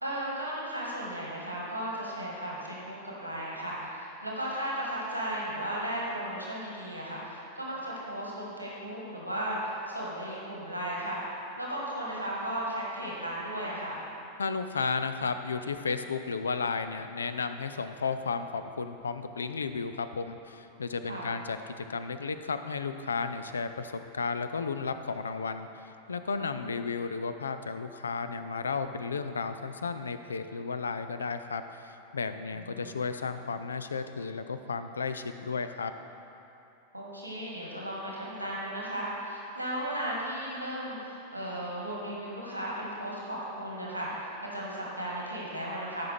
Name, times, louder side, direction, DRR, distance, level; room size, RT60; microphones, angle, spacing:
voice 1, 0.0-11.2 11.6-14.0 21.0-21.3 26.5-26.7 32.5-32.9 36.9-46.1, right 1 dB, 90° right, -5 dB, 1.7 m, -35 dB
voice 2, 14.4-35.9, left 5 dB, 70° left, 10 dB, 0.4 m, -33 dB
14.0 x 5.9 x 3.4 m, 2.8 s
figure-of-eight pair, 90°, 0 cm